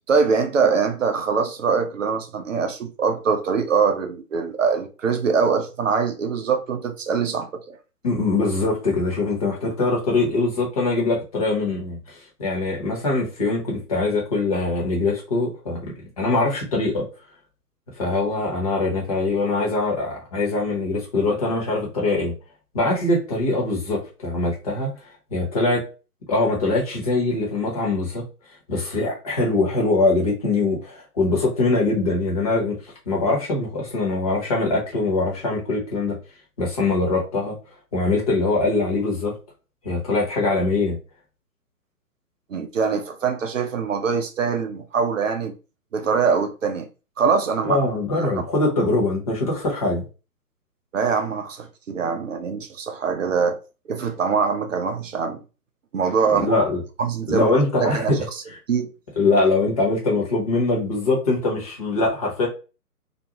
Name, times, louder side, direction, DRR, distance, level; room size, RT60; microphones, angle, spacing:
voice 1, 0.1-7.8 42.5-45.5 45.9-46.9 47.2-47.8 48.2-48.4 50.9-53.6 53.9-55.4 55.9-56.5 57.0-57.5 57.8-58.4 58.7-58.9, right 5 dB, 55° right, 0.6 m, -23 dB
voice 2, 8.0-17.1 18.0-22.3 22.7-24.9 25.3-25.8 26.3-28.2 28.7-32.8 33.1-36.2 36.6-37.6 37.9-39.3 39.8-41.0 47.7-50.0 56.3-56.8 57.3-58.2 59.2-62.5, left 2 dB, 25° left, 0.8 m, -22 dB
2.5 x 2.2 x 2.9 m
figure-of-eight pair, 135°, 47 cm